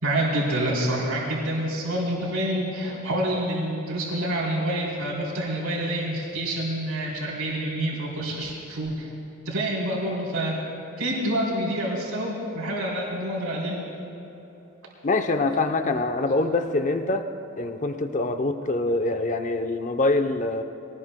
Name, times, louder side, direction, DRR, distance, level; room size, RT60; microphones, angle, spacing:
voice 1, 0.0-9.1 9.4-10.6 11.0-13.8, right 1 dB, 90° right, -4 dB, 3.5 m, -27 dB
voice 2, 15.0-17.3 17.6-20.6, left 2 dB, 35° left, 7 dB, 0.7 m, -24 dB
22.5 x 18.5 x 2.2 m, 2.9 s
head